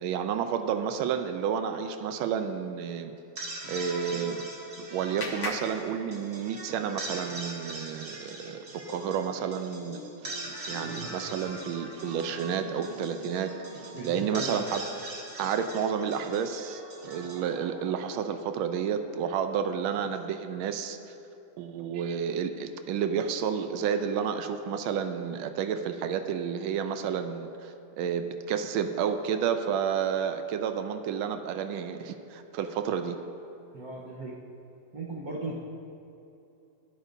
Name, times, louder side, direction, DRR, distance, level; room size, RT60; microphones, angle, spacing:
voice 1, 0.0-3.1 3.7-4.4 4.8-10.0 10.7-13.5 14.0-14.8 15.4-21.0 21.6-33.2, right 7 dB, 85° right, 8 dB, 1.4 m, -30 dB
sound 1, 3.2-18.4, right 2 dB, 35° right, 1.4 m, -42 dB
Clapping, 4.1-6.7, left 2 dB, 45° left, 0.7 m, -41 dB
sound 2, 8.8-15.4, left 1 dB, 70° left, 2.5 m, -47 dB
voice 2, 10.8-11.2 13.9-14.7 33.7-34.4 34.9-35.6, right 2 dB, 50° right, -5 dB, 1.4 m, -37 dB
23.5 x 8.1 x 2.7 m, 2.8 s
omnidirectional pair, 2.2 m